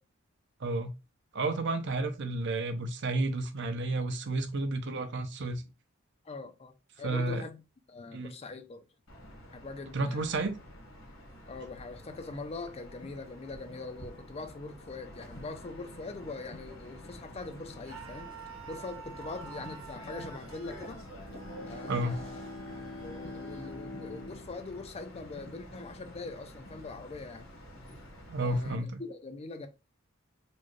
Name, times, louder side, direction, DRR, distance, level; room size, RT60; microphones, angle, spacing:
voice 1, 0.6-0.9 1.3-5.6 7.0-7.4 8.1-8.3 9.9-10.5 21.9-22.2 28.3-29.0, right 2 dB, 60° right, 0.6 m, -31 dB
voice 2, 6.2-7.6 7.9-8.9 9.5-10.3 11.5-18.3 18.7-21.0 21.6-22.4 23.0-27.5 28.4-29.7, left 3 dB, 30° left, 0.5 m, -42 dB
sound 1, 9.1-28.7, equal, 90° left, 1.6 m, -48 dB
Screaming, 17.8-23.8, right 7 dB, 90° right, 1.2 m, -49 dB
Bowed string instrument, 20.8-25.6, left 2 dB, 75° left, 1.1 m, -45 dB
4.2 x 2.3 x 3.1 m
head